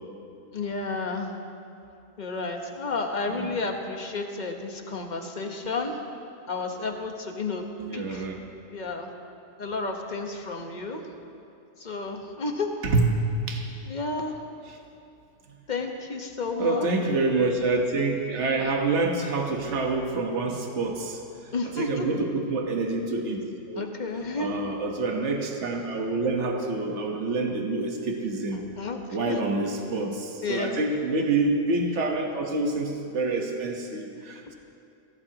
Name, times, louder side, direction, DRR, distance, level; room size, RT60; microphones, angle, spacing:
voice 1, 0.5-1.3 2.2-6.0 6.5-7.6 7.9-8.3 8.7-9.1 9.6-11.0 11.8-12.7 13.9-14.4 15.7-16.9 21.5-22.1 23.7-24.5 28.8-29.4 30.4-30.7, left 3 dB, 35° left, 3 dB, 1.3 m, -31 dB
voice 2, 7.8-8.4 12.8-13.1 13.4-13.7 14.7-14.8 16.6-23.9 24.4-28.6 29.1-34.5, right 3 dB, 65° right, 2 dB, 1.6 m, -27 dB
22.5 x 16.0 x 2.9 m, 2.6 s
omnidirectional pair, 1.3 m